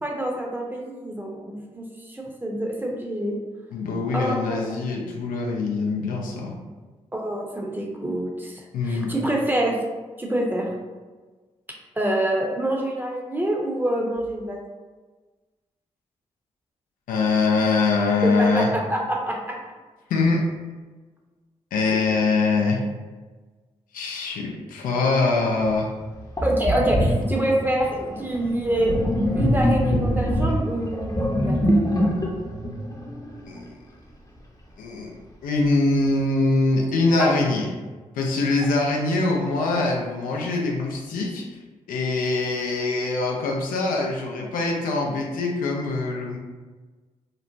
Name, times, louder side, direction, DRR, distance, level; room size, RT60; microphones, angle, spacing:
voice 1, 0.0-3.4 4.1-4.7 7.1-9.8 10.2-10.7 12.0-14.6 18.2-19.5 21.8-22.0 26.4-29.0 29.3-31.6 37.2-37.3, right 1 dB, 15° right, -1 dB, 0.7 m, -26 dB
voice 2, 3.7-6.6 8.7-9.1 17.1-18.7 20.1-20.5 21.7-22.8 23.9-25.9 33.5-33.7 34.8-35.1 35.4-37.7 38.2-41.4 41.9-46.4, left 3 dB, 80° left, 0 dB, 0.4 m, -23 dB
Sink (filling or washing), 25.7-25.8 26.4-33.7, equal, 25° left, 0.7 m, -24 dB
2.9 x 2.1 x 2.6 m, 1.3 s
supercardioid pair, 40°, 14 cm